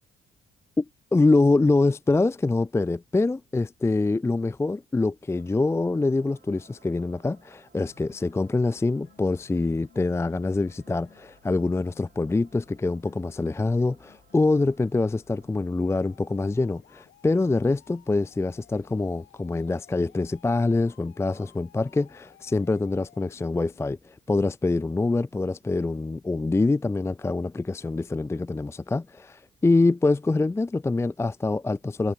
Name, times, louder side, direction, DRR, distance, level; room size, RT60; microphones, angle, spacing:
voice 1, 1.1-32.1, left 3 dB, 15° left, 0.5 m, -25 dB
sound 1, 5.3-16.3, right 8 dB, 55° right, 6.3 m, -62 dB
sound 2, 7.8-23.8, left 12 dB, 75° left, 2.1 m, -58 dB
cardioid pair, 90°, 20 cm